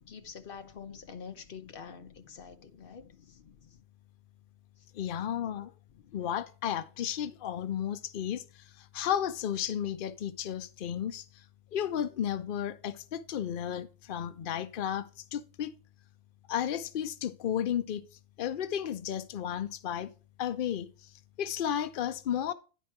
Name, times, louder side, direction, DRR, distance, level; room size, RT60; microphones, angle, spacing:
voice 1, 0.0-3.4 4.8-4.9, left 6 dB, 45° left, 0.9 m, -46 dB
voice 2, 4.9-5.7 6.1-11.4 11.7-15.7 16.5-18.0 18.4-20.1 20.4-21.1 21.4-22.5, left 9 dB, 80° left, 0.4 m, -33 dB
10.0 x 4.6 x 4.5 m
omnidirectional pair, 1.6 m